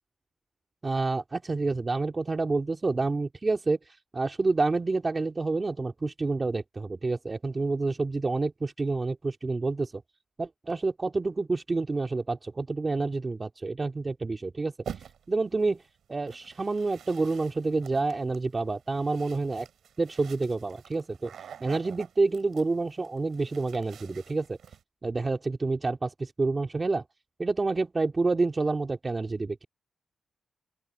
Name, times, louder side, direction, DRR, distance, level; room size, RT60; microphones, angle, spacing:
voice 1, 0.8-10.0 10.4-15.8 16.1-19.7 20.0-24.6 25.0-27.0 27.4-29.6, right 3 dB, 30° right, 2.3 m, -28 dB
sound 1, 14.8-15.4 16.3-24.8, right 8 dB, 75° right, 5.6 m, -47 dB
open air
cardioid pair, 80°, 0 cm